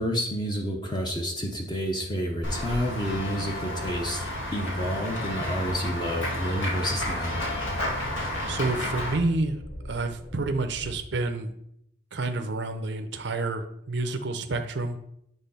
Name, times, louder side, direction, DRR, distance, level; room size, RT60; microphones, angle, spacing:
voice 1, 0.0-4.2 4.5-7.3, equal, 20° left, 1 dB, 0.8 m, -29 dB
Run / Walk footsteps / Bell, 2.4-9.1, left 1 dB, 75° left, 2.4 m, -31 dB
sound 1, 5.4-10.9, equal, 50° left, 1.2 m, -44 dB
voice 2, 8.1-11.5 12.1-15.0, right 2 dB, 55° right, 6 dB, 0.6 m, -29 dB
8.2 x 3.6 x 5.5 m, 0.74 s
head